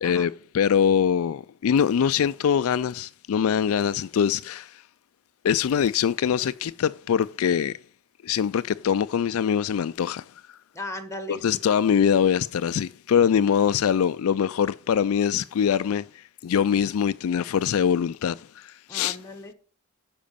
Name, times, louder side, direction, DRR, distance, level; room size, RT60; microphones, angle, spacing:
voice 1, 0.0-4.8 5.4-7.7 8.2-10.3 11.3-19.2, left 8 dB, 65° left, 0.3 m, -23 dB
voice 2, 10.7-11.6 18.9-19.5, left 1 dB, 15° left, 1.6 m, -37 dB
10.5 x 5.1 x 6.8 m
head